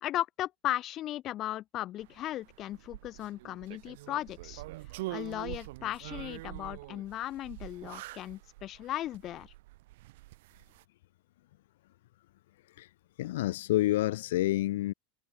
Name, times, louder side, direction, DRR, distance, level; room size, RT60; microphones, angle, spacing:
voice 1, 0.0-4.6 5.1-9.5, left 13 dB, 25° left, 1.7 m, -36 dB
sound 1, 2.0-10.8, right 19 dB, 60° right, 4.1 m, -45 dB
voice 2, 13.2-14.9, left 16 dB, 75° left, 0.5 m, -28 dB
supercardioid pair, 175°, 0 cm